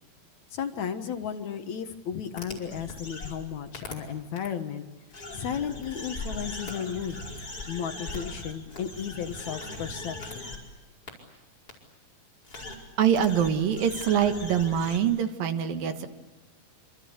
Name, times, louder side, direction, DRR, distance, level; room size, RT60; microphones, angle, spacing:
voice 1, 0.5-4.9 5.3-7.2 7.7-10.6, left 8 dB, 60° left, 7 dB, 2.5 m, -34 dB
sound 1, 2.4-3.3 3.7-3.9 4.4-4.5 5.1-10.6 11.1-11.2 11.7-11.8 12.4-12.7 13.1-15.0, left 2 dB, 25° left, 5.3 m, -39 dB
voice 2, 13.0-16.1, right 8 dB, 80° right, 7 dB, 3.3 m, -24 dB
26.5 x 26.5 x 8.1 m, 1.1 s
omnidirectional pair, 4.0 m